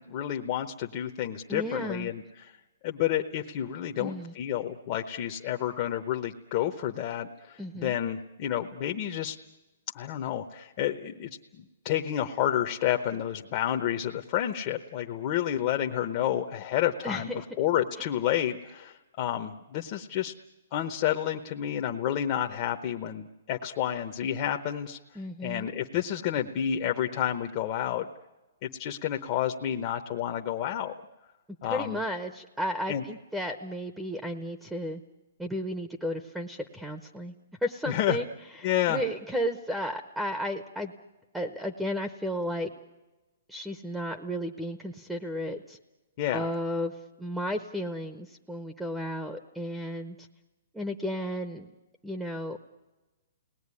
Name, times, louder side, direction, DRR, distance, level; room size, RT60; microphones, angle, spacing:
voice 1, 0.0-2.5 2.8-9.4 9.9-17.3 17.6-20.3 20.7-25.0 25.4-28.1 28.6-30.9 31.6-32.0 32.9-33.0 37.9-38.2 38.6-39.0 46.2-46.5, left 11 dB, 35° left, 4 dB, 0.9 m, -30 dB
voice 2, 1.5-2.1 4.0-4.3 7.6-7.9 17.0-17.4 18.0-18.1 25.1-25.7 31.6-35.0 35.4-37.3 37.6-38.3 38.6-40.9 41.3-42.7 43.5-45.8 46.3-46.9 47.2-50.2 50.7-51.7 52.0-52.6, equal, 5° right, 6 dB, 0.8 m, -33 dB
29.5 x 19.0 x 9.8 m, 1.2 s
hypercardioid pair, 160°, 0 cm